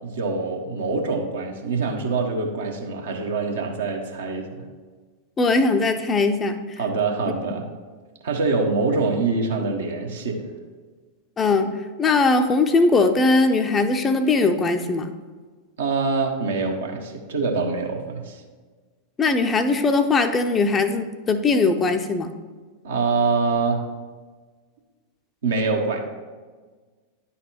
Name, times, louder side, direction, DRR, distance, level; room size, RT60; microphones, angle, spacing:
voice 1, 0.0-4.6 6.8-7.7 8.2-10.4 15.8-18.4 22.8-23.8 25.4-26.0, right 4 dB, 65° right, 2 dB, 1.1 m, -24 dB
voice 2, 5.4-6.6 11.4-11.7 12.0-15.1 19.2-22.3, left 3 dB, 20° left, 8 dB, 0.5 m, -20 dB
10.0 x 4.1 x 4.4 m, 1.4 s
figure-of-eight pair, 90°, 0 cm